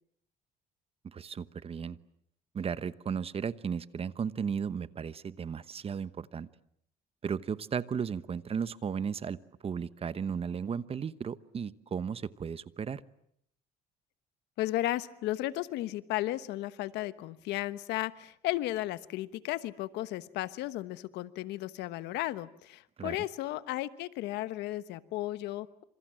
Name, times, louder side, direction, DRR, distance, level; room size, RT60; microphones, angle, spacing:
voice 1, 1.1-2.0 2.5-6.5 7.2-9.4 9.6-13.0 23.0-23.2, right 6 dB, 35° right, 15 dB, 1.1 m, -35 dB
voice 2, 14.6-25.8, left 15 dB, 85° left, 14 dB, 1.2 m, -34 dB
28.0 x 27.0 x 7.7 m, 0.70 s
cardioid pair, 110°, 17 cm